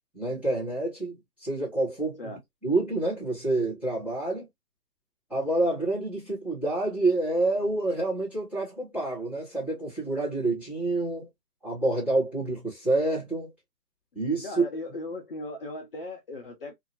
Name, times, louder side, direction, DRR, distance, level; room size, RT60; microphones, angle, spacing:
voice 1, 0.1-1.1 1.4-2.3 2.6-4.5 5.3-11.3 11.6-13.5 14.1-14.6, right 2 dB, 5° right, 1.1 m, -28 dB
voice 2, 14.4-16.8, left 2 dB, 35° left, 0.8 m, -37 dB
2.8 x 2.7 x 2.5 m
hypercardioid pair, 150°, 47 cm